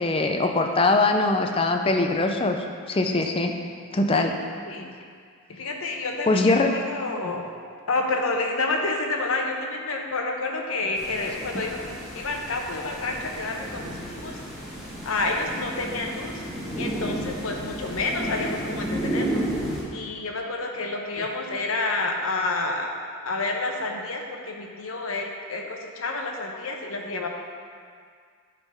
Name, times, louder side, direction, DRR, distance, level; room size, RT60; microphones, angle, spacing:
voice 1, 0.0-2.6 2.9-3.5 3.9-4.3 6.3-6.7, left 2 dB, 25° left, 4 dB, 0.5 m, -22 dB
voice 2, 4.1-4.9 5.5-7.5 7.9-14.4 15.0-16.4 16.8-19.5 19.9-22.9 23.2-27.3, left 3 dB, 70° left, 2 dB, 0.9 m, -29 dB
sound 1, 11.0-19.8, right 1 dB, ahead, 1.3 m, -32 dB
10.0 x 3.8 x 5.5 m, 2.1 s
head